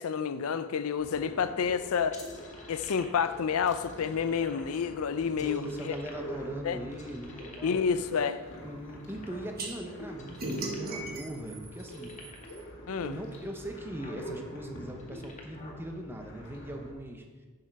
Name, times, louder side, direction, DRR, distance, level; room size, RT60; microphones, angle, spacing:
voice 1, 0.0-2.2 2.7-6.0 6.6-6.8 7.6-8.4 12.9-13.1, left 6 dB, 70° left, 0.4 m, -29 dB
sound 1, 1.0-16.9, equal, 55° left, 1.9 m, -46 dB
sound 2, 2.1-3.3 3.7-4.7 5.3-6.5 6.9-7.9 8.5-9.7 10.1-11.1 11.3-11.4 11.7-12.6 13.3-13.4 13.7-14.2 14.9-15.8, left 3 dB, 30° left, 1.3 m, -50 dB
voice 2, 5.4-7.8 8.6-12.1 13.0-17.2, right 1 dB, 10° right, 0.9 m, -40 dB
sound 3, 9.6-9.7 10.4-12.6, right 2 dB, 45° right, 1.5 m, -37 dB
10.0 x 6.7 x 4.7 m
head